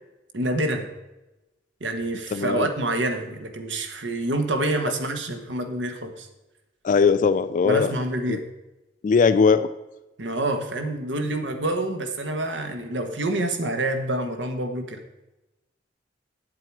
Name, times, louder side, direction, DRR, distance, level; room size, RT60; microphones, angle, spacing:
voice 1, 0.3-0.9 1.8-6.3 7.6-8.4 10.2-15.0, right 1 dB, 75° right, 6 dB, 1.2 m, -27 dB
voice 2, 2.3-2.7 6.8-7.9 8.3-8.4 9.0-9.7, left 5 dB, 45° left, 11 dB, 0.3 m, -19 dB
8.7 x 7.6 x 4.6 m, 1.0 s
head